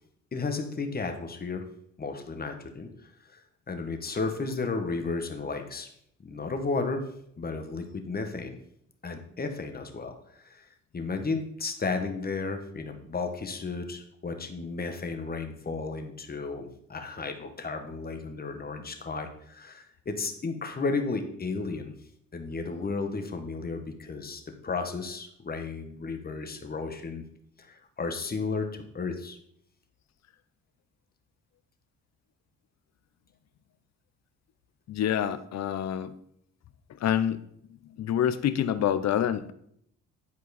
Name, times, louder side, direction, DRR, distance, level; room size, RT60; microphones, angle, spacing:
voice 1, 0.3-1.6 2.0-5.9 6.2-7.0 7.4-8.6 9.0-10.7 10.9-21.9 22.3-27.2 27.6-29.4, left 4 dB, 30° left, 6 dB, 1.3 m, -33 dB
voice 2, 34.9-36.1 37.0-37.4 37.7-39.5, left 10 dB, 60° left, 13 dB, 0.7 m, -27 dB
10.5 x 4.6 x 4.2 m, 0.69 s
cardioid pair, 90°, 30 cm